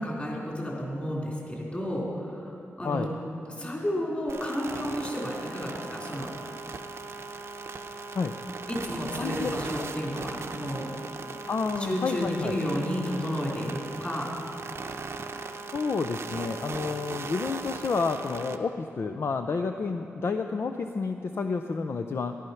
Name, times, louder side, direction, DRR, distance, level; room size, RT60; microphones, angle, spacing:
voice 1, 0.0-3.1 3.6-6.3 8.7-10.9 11.3-11.4 11.8-14.3, equal, 25° left, -3 dB, 3.6 m, -32 dB
sound 1, 4.3-18.6, right 4 dB, 60° right, 0.7 m, -38 dB
voice 2, 9.1-9.5 9.8-9.9 11.5-12.6 15.7-22.4, left 4 dB, 55° left, 6 dB, 0.5 m, -30 dB
14.0 x 11.5 x 5.7 m, 2.7 s
wide cardioid pair, 100°, 5 cm